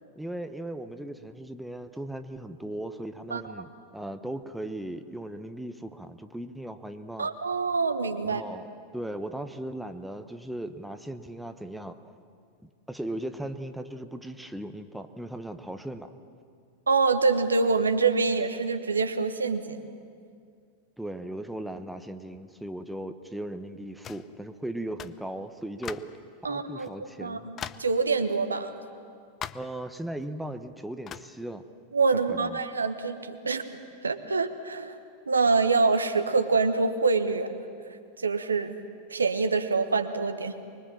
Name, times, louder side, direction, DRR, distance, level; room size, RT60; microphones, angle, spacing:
voice 1, 0.2-7.3 8.2-8.6 8.9-12.1 12.6-16.1 21.0-26.2 26.5-27.5 29.5-31.6 32.3-32.6, right 1 dB, 5° right, 8 dB, 1.1 m, -37 dB
voice 2, 7.2-8.4 16.9-19.9 26.4-28.8 31.9-33.6 34.0-34.9 35.3-37.5 38.2-38.8 39.1-40.5, right 4 dB, 75° right, 8 dB, 1.3 m, -25 dB
sound 1, 24.0-24.3 25.0-25.2 25.8-26.2 26.8-26.9 27.6-27.9 29.4-29.8 31.1-31.3, left 9 dB, 25° left, 0.7 m, -39 dB
24.5 x 22.5 x 7.4 m, 2.3 s
figure-of-eight pair, 90°, 0 cm